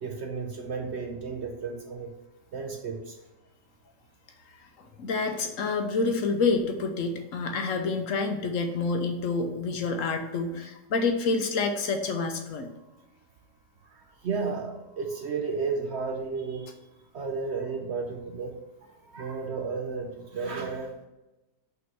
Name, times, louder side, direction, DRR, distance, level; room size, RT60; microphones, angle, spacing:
voice 1, 0.0-2.1 2.5-3.2 13.9-16.8 17.1-18.6 18.8-20.9, right 4 dB, 60° right, 3 dB, 0.7 m, -33 dB
voice 2, 4.8-12.7, left 4 dB, 60° left, 5 dB, 0.9 m, -28 dB
5.4 x 3.9 x 4.6 m, 1.0 s
omnidirectional pair, 1.8 m